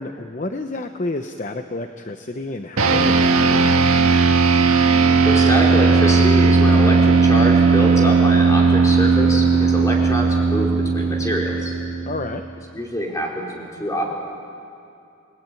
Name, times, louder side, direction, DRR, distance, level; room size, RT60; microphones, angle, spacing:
voice 1, 0.0-3.2 3.4-3.9 12.1-12.4, left 2 dB, 35° left, 7 dB, 0.8 m, -30 dB
sound 1, 2.8-12.4, right 4 dB, 90° right, 1.6 m, -16 dB
voice 2, 5.2-11.7 12.7-14.0, equal, 15° left, -2 dB, 4.3 m, -25 dB
29.5 x 19.0 x 9.2 m, 2.5 s
head